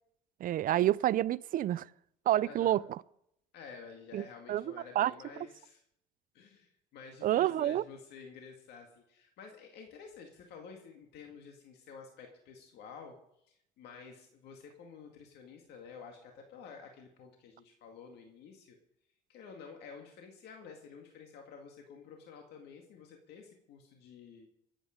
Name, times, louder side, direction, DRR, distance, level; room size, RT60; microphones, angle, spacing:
voice 1, 0.4-1.9 2.3-2.8 4.1-4.6 5.0-5.1 7.2-7.8, right 13 dB, 55° right, 0.5 m, -28 dB
voice 2, 2.4-2.8 3.5-5.8 6.3-13.2 13.4-18.8 19.3-24.5, left 5 dB, 80° left, 2.1 m, -51 dB
23.0 x 8.9 x 5.2 m
cardioid pair, 110°, 17 cm